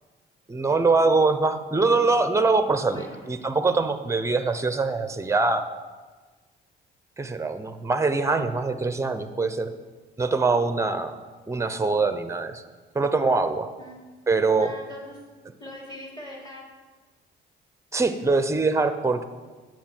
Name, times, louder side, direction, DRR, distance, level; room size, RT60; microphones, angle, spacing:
voice 1, 0.5-5.7 7.2-9.7 10.2-11.1 11.5-12.6 12.9-13.7 14.3-14.7 17.9-19.2, right 3 dB, 15° right, 10 dB, 0.7 m, -23 dB
voice 2, 14.6-15.2 15.6-16.6, left 1 dB, 20° left, -2 dB, 3.0 m, -41 dB
9.4 x 7.7 x 4.5 m, 1.3 s
cardioid pair, 90°, 20 cm